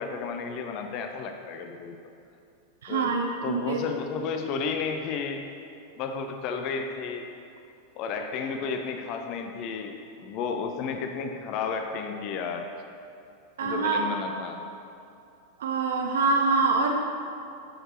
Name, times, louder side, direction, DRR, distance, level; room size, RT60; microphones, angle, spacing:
voice 1, 0.0-2.0 2.9-5.5 6.0-7.2 7.9-12.7 13.6-14.6, left 5 dB, 40° left, 5 dB, 0.6 m, -32 dB
voice 2, 2.8-3.8 13.6-14.1 15.6-17.0, right 4 dB, 60° right, 3 dB, 0.6 m, -25 dB
10.0 x 6.7 x 4.3 m, 2.6 s
figure-of-eight pair, 90°, 0 cm